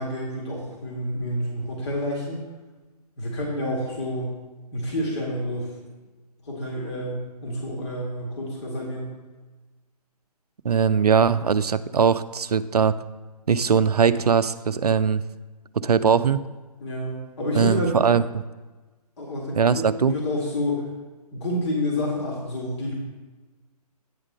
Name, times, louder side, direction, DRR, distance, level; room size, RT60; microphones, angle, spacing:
voice 1, 0.0-2.4 3.2-4.4 4.7-5.7 6.4-9.2 16.8-17.9 19.2-19.6 20.1-20.9 21.3-22.9, left 1 dB, 45° left, -3 dB, 1.9 m, -29 dB
voice 2, 10.6-13.0 13.5-15.2 15.7-16.4 17.5-18.4 19.6-20.1, right 6 dB, 75° right, 14 dB, 0.4 m, -20 dB
9.0 x 3.6 x 6.5 m, 1.2 s
figure-of-eight pair, 135°, 20 cm